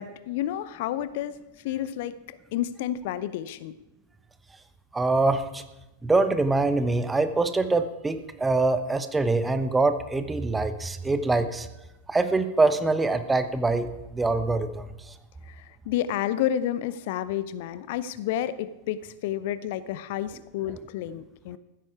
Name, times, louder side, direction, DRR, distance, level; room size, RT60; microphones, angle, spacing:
voice 1, 0.0-1.4 1.6-3.7 15.5-21.6, left 11 dB, 50° left, 15 dB, 0.6 m, -30 dB
voice 2, 4.9-5.6 6.0-11.7 12.1-14.9, right 3 dB, 10° right, 10 dB, 1.0 m, -24 dB
15.0 x 13.0 x 4.8 m, 0.99 s
figure-of-eight pair, 90°, 0 cm